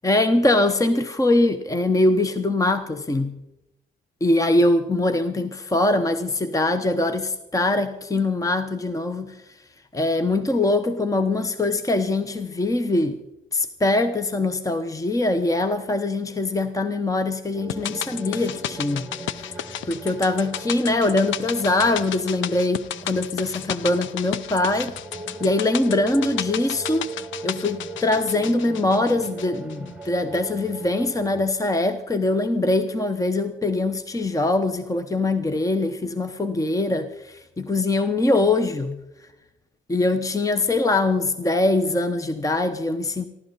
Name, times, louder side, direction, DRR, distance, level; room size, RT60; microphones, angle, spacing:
voice 1, 0.0-3.3 4.2-9.4 9.9-13.2 13.5-19.0 19.4-19.6 19.9-24.9 25.4-27.1 27.4-37.1 37.6-39.0 39.9-43.3, left 2 dB, 15° left, 0.9 m, -22 dB
sound 1, 17.5-31.5, right 3 dB, 5° right, 1.6 m, -39 dB
sound 2, 17.7-30.1 30.3-30.4, left 11 dB, 75° left, 0.6 m, -33 dB
27.0 x 12.0 x 4.0 m
cardioid pair, 90°, 20 cm